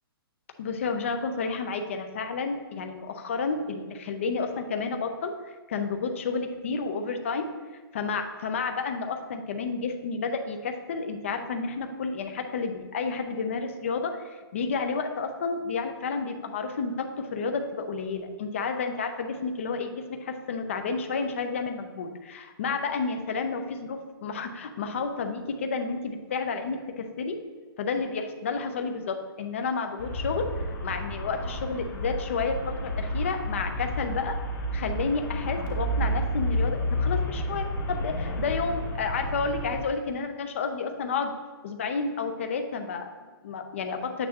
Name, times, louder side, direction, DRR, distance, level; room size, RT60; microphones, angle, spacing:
voice 1, 0.6-5.3 5.7-7.5 7.9-27.4 27.8-34.4 34.7-41.3 41.6-44.3, left 4 dB, 30° left, 6 dB, 0.6 m, -31 dB
Traffic noise roadway noise, 30.0-39.8, equal, 55° left, 2.8 m, -30 dB
9.3 x 8.6 x 2.9 m, 1.4 s
hypercardioid pair, 180°, 13 cm